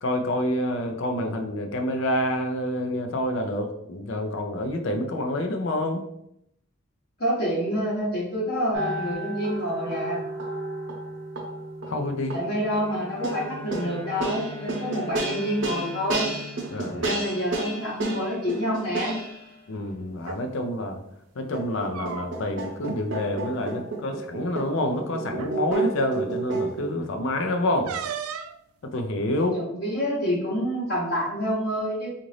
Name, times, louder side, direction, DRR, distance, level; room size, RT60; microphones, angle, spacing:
voice 1, 0.0-6.1 11.8-12.4 16.7-17.1 19.7-21.0 21.4-27.9 28.8-29.5, left 1 dB, 65° left, 4 dB, 0.5 m, -28 dB
voice 2, 7.2-10.2 12.3-16.3 16.9-19.2 29.3-32.1, equal, 45° left, -5 dB, 0.9 m, -27 dB
sound 1, 8.7-19.5 21.5-26.9, right 2 dB, 60° right, 0.8 m, -32 dB
Bowed string instrument, 12.5-18.1, left 2 dB, 10° left, 0.4 m, -42 dB
sound 2, 20.1-20.4 21.7-22.6 22.8-23.0 23.4-23.6 24.6-24.7 25.3-25.6 27.9-28.6, right 7 dB, 85° right, 0.3 m, -35 dB
3.9 x 2.5 x 3.1 m, 0.78 s
head